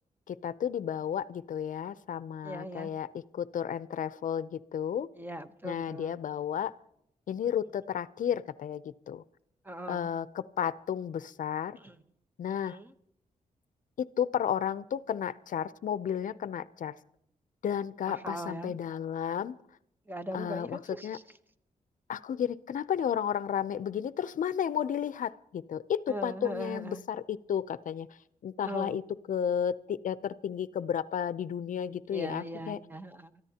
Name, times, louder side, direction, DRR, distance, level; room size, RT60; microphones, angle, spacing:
voice 1, 0.3-3.1 3.3-5.1 5.6-6.7 7.3-9.2 9.9-11.8 12.4-12.8 14.0-16.9 17.6-19.6 20.3-21.2 22.1-28.1 28.4-29.0 29.3-32.8, left 8 dB, 65° left, 15 dB, 0.5 m, -32 dB
voice 2, 2.4-2.9 5.1-6.2 9.6-10.1 11.8-12.0 12.5-12.9 18.1-18.8 20.1-21.2 26.1-27.0 28.6-29.0 32.1-33.4, right 1 dB, 15° right, 10 dB, 0.9 m, -40 dB
24.5 x 14.0 x 2.9 m, 0.74 s
cardioid pair, 105°, 14 cm